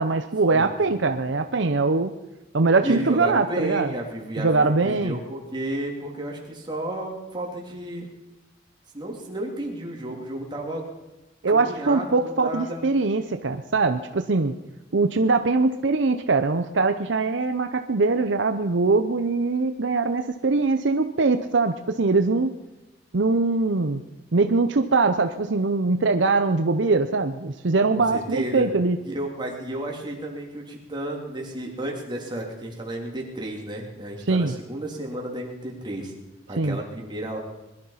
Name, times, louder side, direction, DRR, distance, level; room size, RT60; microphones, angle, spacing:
voice 1, 0.0-2.1 2.5-3.9 4.4-5.2 11.4-14.5 14.9-22.5 23.1-24.0 24.3-29.0 34.3-34.5 36.6-36.8, right 3 dB, 65° right, 8 dB, 0.7 m, -22 dB
voice 2, 0.5-1.1 2.8-8.1 8.9-10.9 11.5-12.8 27.9-28.7 29.0-36.1 36.5-37.4, right 1 dB, 25° right, 0 dB, 3.1 m, -32 dB
21.0 x 12.0 x 5.7 m, 1.0 s
head